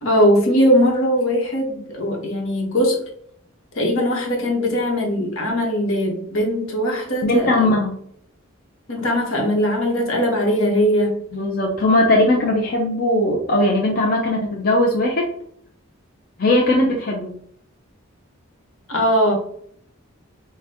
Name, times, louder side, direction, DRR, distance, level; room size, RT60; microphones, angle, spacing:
voice 1, 0.0-3.0 3.7-7.5 8.9-11.2 18.9-19.3, equal, 70° left, 0 dB, 1.2 m, -20 dB
voice 2, 7.2-8.0 11.3-15.3 16.4-17.3, left 1 dB, 45° left, -2 dB, 0.6 m, -19 dB
5.7 x 2.2 x 2.9 m, 0.65 s
head